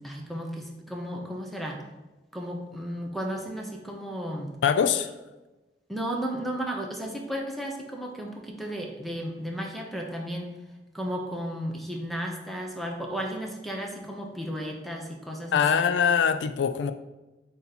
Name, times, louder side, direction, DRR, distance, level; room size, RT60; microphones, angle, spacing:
voice 1, 0.0-1.9 2.3-4.6 5.9-10.5 10.9-15.8, equal, ahead, 0 dB, 0.7 m, -34 dB
voice 2, 4.6-5.1 15.5-16.9, left 7 dB, 85° left, 10 dB, 0.3 m, -23 dB
8.1 x 2.8 x 4.0 m, 1.1 s
head